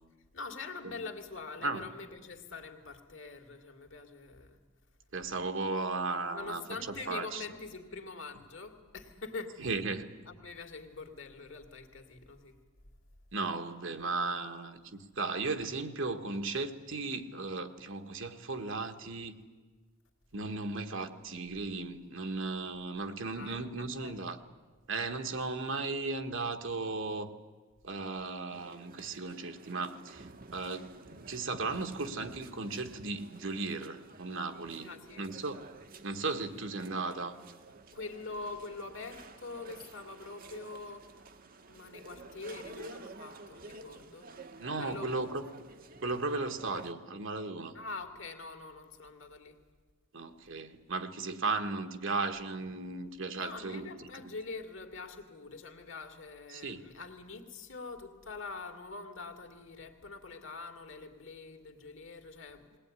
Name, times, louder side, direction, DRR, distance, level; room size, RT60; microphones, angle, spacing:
voice 1, 0.3-4.6 6.3-9.8 10.3-12.6 23.3-24.3 34.8-35.3 37.9-41.3 41.7-44.3 44.8-45.2 47.7-49.6 53.3-62.8, left 3 dB, 60° left, 5 dB, 2.3 m, -44 dB
voice 2, 5.1-6.6 7.1-7.4 9.6-10.1 13.3-19.4 20.3-24.4 24.9-27.3 27.8-30.2 30.5-30.8 31.3-34.9 35.2-35.6 36.0-37.3 44.6-45.4 46.0-47.7 50.1-53.8 56.5-56.8, right 3 dB, 60° right, 7 dB, 1.4 m, -36 dB
sound 1, 28.5-46.9, right 3 dB, 45° right, 1.0 m, -51 dB
21.0 x 18.5 x 9.7 m, 1.4 s
head